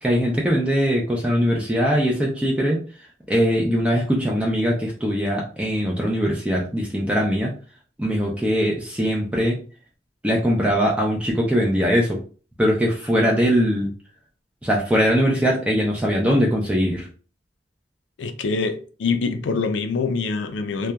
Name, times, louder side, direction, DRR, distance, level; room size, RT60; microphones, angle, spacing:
voice 1, 0.0-2.8 3.3-7.5 8.0-9.6 10.2-12.2 12.6-13.9 14.6-17.1, equal, 5° right, 0.4 m, -21 dB
voice 2, 18.2-20.9, left 4 dB, 90° left, 0.4 m, -25 dB
2.8 x 2.2 x 2.2 m
head